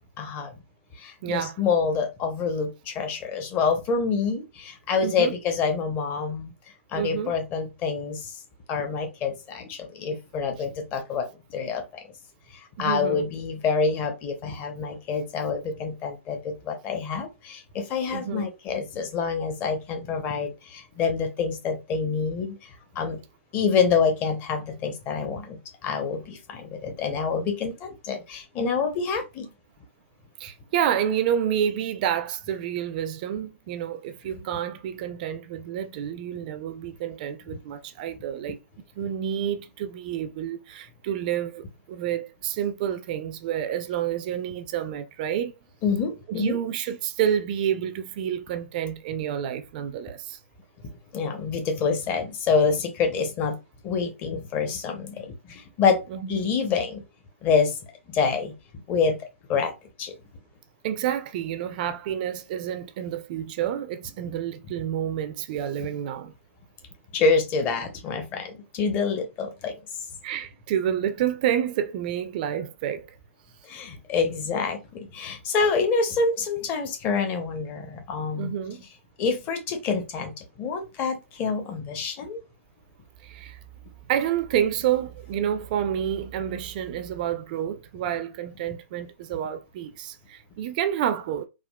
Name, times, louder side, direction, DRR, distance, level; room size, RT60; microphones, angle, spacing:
voice 1, 0.2-0.5 1.0-6.5 6.9-8.4 8.7-12.0 12.5-22.6 22.9-23.2 23.5-29.5 45.8-46.6 51.1-53.6 53.8-56.0 56.3-57.0 57.4-57.8 58.1-58.5 58.9-59.2 59.5-59.7 60.0-60.1 67.1-69.8 73.6-78.5 79.2-82.4, left 5 dB, 25° left, 0.7 m, -27 dB
voice 2, 1.2-1.6 5.0-5.3 6.9-7.3 12.8-13.2 18.1-18.5 30.4-38.6 39.0-45.5 46.3-50.4 56.1-56.4 60.8-66.3 70.2-73.2 78.4-78.8 83.2-83.6 84.1-91.5, right 10 dB, 35° right, 0.4 m, -29 dB
3.6 x 2.3 x 2.2 m
hypercardioid pair, 130°, 7 cm